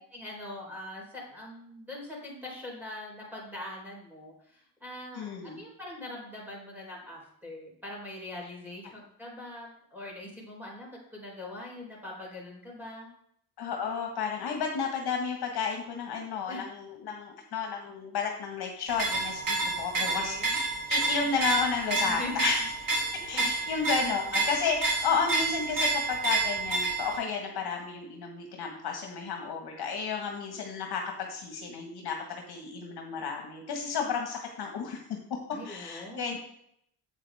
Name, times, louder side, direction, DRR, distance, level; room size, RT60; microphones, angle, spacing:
voice 1, 0.1-13.1 16.5-16.7 19.9-20.5 22.0-22.4 23.3-23.4 35.5-36.2, left 1 dB, 5° right, -3 dB, 4.2 m, -42 dB
voice 2, 5.1-5.6 13.6-22.7 23.3-35.0 35.6-36.4, left 5 dB, 55° left, 2 dB, 1.7 m, -32 dB
sound 1, 18.9-27.2, right 3 dB, 45° right, 2.3 m, -29 dB
8.5 x 8.2 x 3.6 m, 0.71 s
cardioid pair, 125°, 45 cm